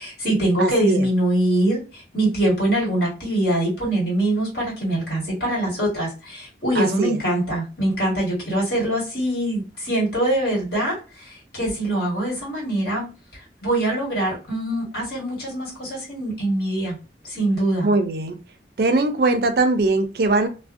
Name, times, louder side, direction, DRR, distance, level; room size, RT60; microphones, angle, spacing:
voice 1, 0.0-13.0 13.6-17.0 17.2-17.9, right 1 dB, 60° left, -4 dB, 1.5 m, -23 dB
voice 2, 0.6-1.1 6.7-7.2 17.8-18.4 18.8-20.5, right 2 dB, 60° right, 7 dB, 0.4 m, -21 dB
2.4 x 2.0 x 2.5 m, 0.32 s
head